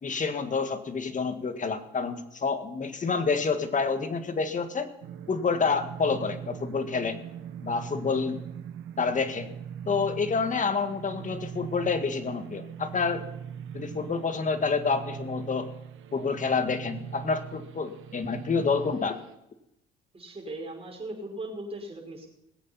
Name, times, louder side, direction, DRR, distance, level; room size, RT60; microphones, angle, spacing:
voice 1, 0.0-4.9 5.3-7.2 7.6-8.4 9.0-9.5 9.9-13.3 13.7-15.7 16.1-19.2, left 5 dB, 40° left, 8 dB, 1.8 m, -28 dB
sound 1, 5.0-19.3, right 8 dB, 80° right, 1.4 m, -41 dB
voice 2, 20.1-22.3, right 1 dB, 30° right, 1 dB, 5.0 m, -38 dB
20.0 x 8.4 x 5.7 m, 0.84 s
cardioid pair, 90°, 20 cm